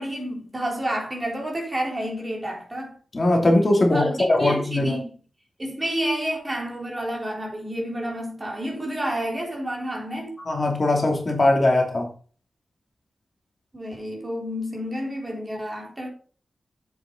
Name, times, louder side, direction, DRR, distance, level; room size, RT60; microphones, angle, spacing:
voice 1, 0.0-2.9 3.9-5.1 5.6-10.4 13.7-16.1, equal, 25° right, 3.7 m, -30 dB
voice 2, 3.1-5.0 10.4-12.1, left 2 dB, 40° left, 2.8 m, -20 dB
8.1 x 7.4 x 3.9 m
cardioid pair, 75°, 0 cm